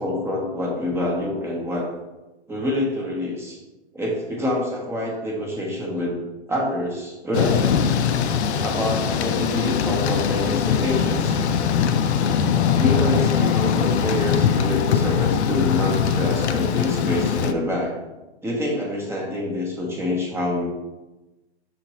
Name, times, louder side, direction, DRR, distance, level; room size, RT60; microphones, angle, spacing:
voice 1, 0.0-1.9 2.5-3.6 3.9-6.2 6.5-8.0 8.6-11.4 12.7-17.9 18.4-20.7, left 1 dB, 10° right, -2 dB, 0.7 m, -26 dB
Thunder / Rain, 7.3-17.5, left 7 dB, 80° left, 0.5 m, -22 dB
sound 1, 10.5-15.6, left 10 dB, 25° left, 0.4 m, -31 dB
5.8 x 2.9 x 2.9 m, 1.1 s
hypercardioid pair, 130°, 33 cm